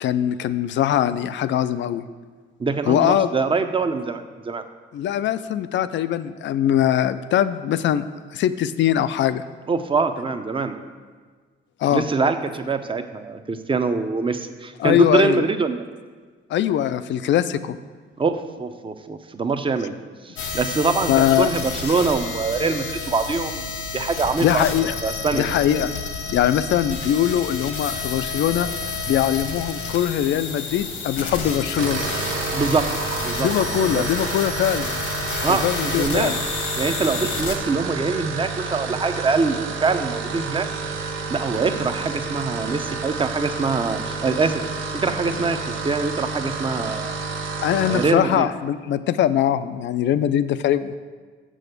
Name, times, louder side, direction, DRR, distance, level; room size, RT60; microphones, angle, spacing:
voice 1, 0.0-2.1 2.9-3.3 4.9-8.0 8.3-9.4 11.8-12.0 14.8-15.4 16.5-17.8 21.1-21.5 24.4-25.0 25.3-25.9 26.3-28.7 29.1-32.2 33.4-35.0 35.5-36.4 47.6-51.0, left 10 dB, 65° left, 13 dB, 0.5 m, -21 dB
voice 2, 2.6-4.6 9.7-10.8 11.9-15.8 18.2-19.9 20.2-23.7 23.9-24.6 25.0-25.6 32.5-32.9 33.2-33.5 33.8-34.1 35.4-36.3 36.8-40.7 41.3-44.6 44.9-45.6 45.8-47.2 47.9-48.5, right 4 dB, 25° right, 8 dB, 0.7 m, -24 dB
sound 1, 20.4-37.6, left 4 dB, 90° left, 1.4 m, -30 dB
sound 2, 31.8-48.2, right 4 dB, 85° right, 0.8 m, -30 dB
6.6 x 6.2 x 6.6 m, 1.5 s
cardioid pair, 90°, 20 cm